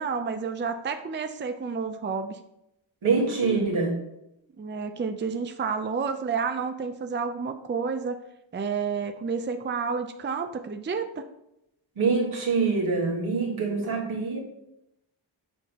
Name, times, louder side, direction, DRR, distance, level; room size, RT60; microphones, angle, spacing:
voice 1, 0.0-2.4 4.6-8.2 8.5-11.2 13.8-14.0, right 5 dB, 25° right, 7 dB, 0.5 m, -30 dB
voice 2, 3.0-4.0 12.0-14.4, right 4 dB, 80° right, -2 dB, 1.7 m, -25 dB
7.2 x 5.2 x 3.0 m, 0.85 s
cardioid pair, 60°, 47 cm